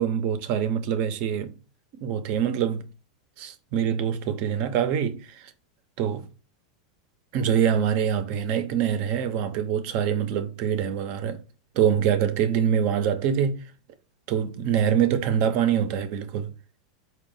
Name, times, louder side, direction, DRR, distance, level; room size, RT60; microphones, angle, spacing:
voice 1, 0.0-1.5 2.0-2.9 3.4-5.5 6.0-6.3 7.3-11.4 11.7-13.7 14.3-16.6, right 8 dB, 55° right, 0.7 m, -25 dB
4.8 x 2.4 x 3.8 m
hypercardioid pair, 120°, 3 cm